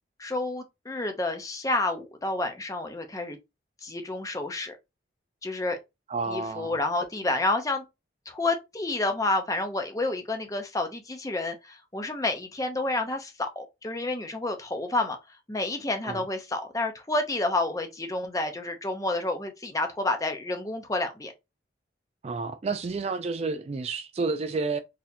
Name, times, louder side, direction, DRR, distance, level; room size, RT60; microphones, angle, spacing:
voice 1, 0.2-3.4 3.8-4.8 5.4-5.8 6.3-7.8 8.3-15.2 15.5-21.3, left 2 dB, 20° left, 0.6 m, -29 dB
voice 2, 6.1-6.8 16.0-16.2 22.2-24.8, right 4 dB, 35° right, 0.3 m, -30 dB
4.0 x 2.8 x 2.6 m
head